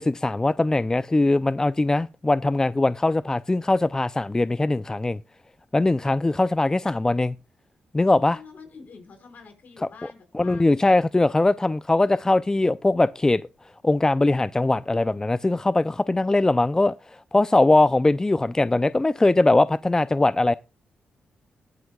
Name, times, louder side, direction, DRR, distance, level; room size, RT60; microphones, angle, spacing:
voice 1, 0.0-5.2 5.7-7.3 7.9-8.4 10.3-13.4 13.8-20.5, left 2 dB, 20° left, 0.4 m, -21 dB
voice 2, 8.3-10.9, left 5 dB, 60° left, 5.3 m, -48 dB
21.0 x 7.8 x 2.3 m
cardioid pair, 60°, 3 cm